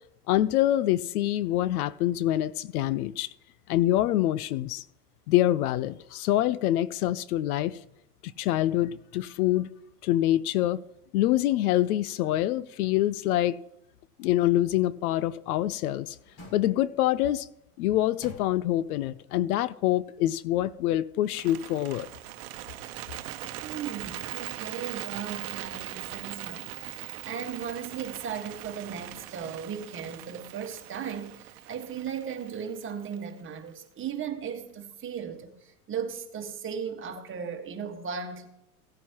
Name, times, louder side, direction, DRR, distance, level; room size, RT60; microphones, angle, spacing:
voice 1, 0.3-3.3 3.7-4.8 5.3-7.8 8.2-9.7 10.0-10.8 11.1-13.6 14.2-16.2 16.5-17.5 17.8-22.1, left 14 dB, 70° left, 0.7 m, -25 dB
sound 1, 15.6-17.2 17.7-19.0 19.4-19.5, left 2 dB, 50° left, 5.4 m, -51 dB
Bird, 21.2-33.4, right 15 dB, 65° right, 1.0 m, -41 dB
voice 2, 23.6-38.5, right 7 dB, 25° right, 1.7 m, -37 dB
16.5 x 9.4 x 3.0 m
hypercardioid pair, 110°, 46 cm